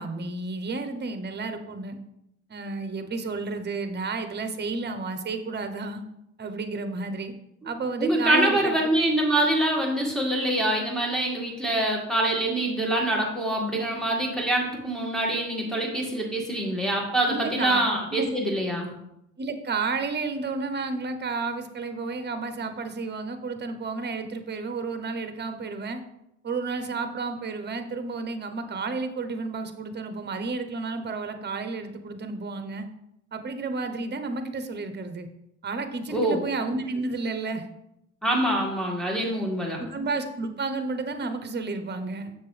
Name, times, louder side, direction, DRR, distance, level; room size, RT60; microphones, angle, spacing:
voice 1, 0.0-2.0 2.5-6.0 6.4-7.3 7.6-8.7 17.3-17.8 18.1-18.3 19.4-26.0 26.4-32.9 33.3-35.3 35.6-37.6 39.8-42.3, right 3 dB, 35° right, 8 dB, 0.9 m, -31 dB
voice 2, 8.0-18.9 36.1-36.4 38.2-39.8, right 1 dB, ahead, -3 dB, 2.0 m, -25 dB
6.9 x 6.7 x 3.3 m, 0.82 s
cardioid pair, 90°, 30 cm